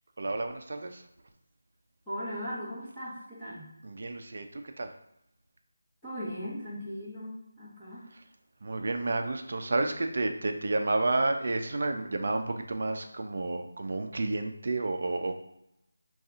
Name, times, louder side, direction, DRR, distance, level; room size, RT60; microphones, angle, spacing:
voice 1, 0.2-1.0 3.8-4.9 8.6-15.3, right 2 dB, 55° right, 5 dB, 0.4 m, -30 dB
voice 2, 2.1-3.7 6.0-8.1, equal, 5° left, -15 dB, 1.0 m, -38 dB
2.7 x 2.3 x 3.6 m, 0.83 s
figure-of-eight pair, 165°, 0 cm